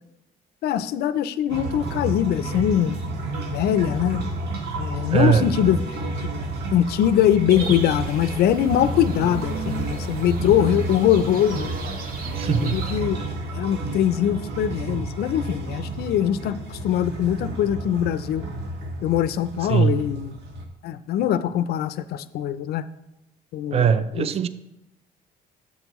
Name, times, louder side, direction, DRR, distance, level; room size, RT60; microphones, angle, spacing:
voice 1, 0.6-3.0 3.3-4.2 4.8-5.8 6.7-11.7 12.5-13.2 13.6-16.6 16.8-18.4 19.0-20.3 20.8-22.8 23.5-23.8 24.2-24.3, left 10 dB, 70° left, 14 dB, 0.5 m, -22 dB
sound 1, 1.5-20.7, right 2 dB, 80° right, 1.6 m, -31 dB
voice 2, 5.1-5.5 12.4-12.8 19.7-20.0 23.7-24.5, right 7 dB, 35° right, 13 dB, 0.5 m, -20 dB
sound 2, 7.5-13.0, right 4 dB, 60° right, 1.1 m, -36 dB
11.0 x 7.5 x 3.1 m, 0.92 s
cardioid pair, 110°, 17 cm